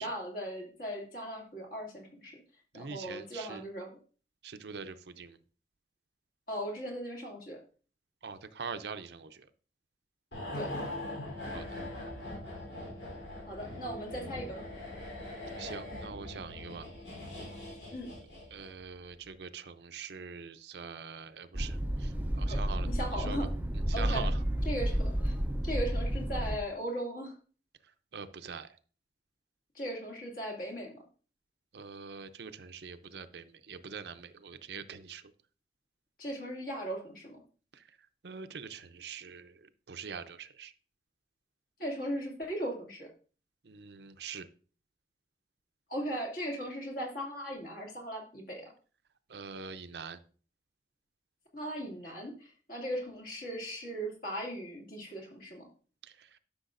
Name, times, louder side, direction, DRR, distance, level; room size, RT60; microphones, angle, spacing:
voice 1, 0.0-2.4 2.7-4.0 6.5-7.6 10.5-10.9 13.5-14.6 17.9-18.1 22.5-22.6 22.8-23.5 23.9-24.3 24.6-25.3 25.6-27.3 29.7-31.0 36.2-37.4 41.8-43.1 45.9-48.7 51.5-52.3 52.7-55.7, equal, 50° left, 0 dB, 2.4 m, -38 dB
voice 2, 2.7-3.6 4.4-5.4 8.2-9.5 11.5-11.6 15.6-16.9 18.5-22.1 22.4-23.5 23.9-24.4 28.1-28.7 31.7-35.2 37.7-37.8 38.2-40.7 43.6-44.5 49.3-50.2 56.0-56.3, right 5 dB, 65° right, 10 dB, 0.6 m, -43 dB
sound 1, 10.3-18.8 19.1-19.3, left 1 dB, 85° left, 3.5 m, -42 dB
sound 2, 21.5-26.6, equal, 10° right, 0.5 m, -31 dB
12.0 x 6.0 x 2.5 m, 0.39 s
head